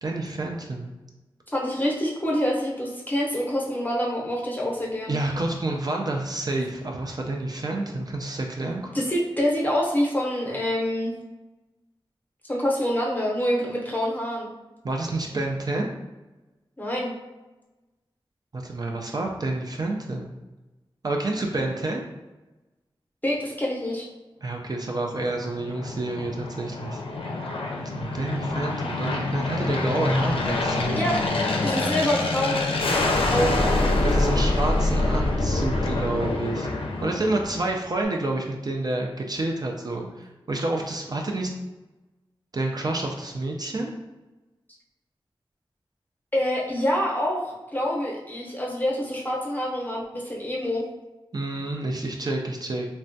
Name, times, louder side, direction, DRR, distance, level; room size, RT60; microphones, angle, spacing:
voice 1, 0.0-0.9 5.1-8.9 14.8-15.9 18.5-20.3 21.0-22.0 24.4-27.0 27.8-31.0 34.0-36.7 37.0-41.5 42.5-43.9 51.3-52.9, right 2 dB, 45° right, 0 dB, 0.4 m, -29 dB
voice 2, 1.5-5.2 8.6-11.1 12.4-14.5 16.8-17.1 23.2-24.1 30.9-31.2 31.6-32.8 33.2-33.9 46.3-50.8, equal, 20° left, -3 dB, 0.7 m, -26 dB
Aircraft, 25.0-37.8, left 2 dB, 70° left, 0.4 m, -26 dB
3.3 x 2.1 x 2.6 m, 1.1 s
wide cardioid pair, 75°, 9 cm